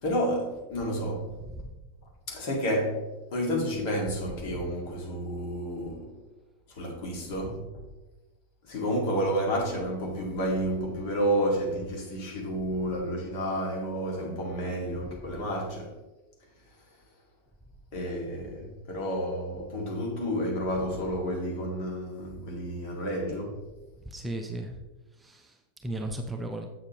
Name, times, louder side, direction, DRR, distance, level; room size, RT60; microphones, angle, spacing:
voice 1, 0.0-1.4 2.3-6.1 6.7-7.6 8.6-15.9 17.9-23.6, equal, 45° left, 2.0 m, -30 dB
voice 2, 1.4-1.8 24.0-24.8 25.1-26.7, right 1 dB, 10° right, 0.6 m, -36 dB
7.8 x 6.6 x 3.0 m
figure-of-eight pair, 90°, 0 cm